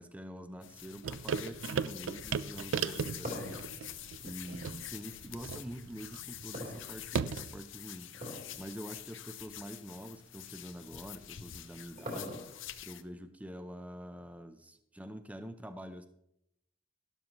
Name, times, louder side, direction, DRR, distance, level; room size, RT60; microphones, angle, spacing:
voice 1, 0.0-8.1 8.6-12.4 12.8-16.1, equal, 5° right, 9 dB, 0.5 m, -46 dB
sound 1, 0.6-13.0, left 12 dB, 70° left, 0.7 m, -47 dB
sound 2, 1.0-7.6, right 6 dB, 75° right, 0.4 m, -37 dB
sound 3, 3.2-5.2 6.5-7.4 8.1-8.6 8.9-9.0 9.8-9.9 11.3-12.8, equal, 45° right, 3.3 m, -42 dB
12.5 x 12.0 x 3.0 m, 0.78 s
head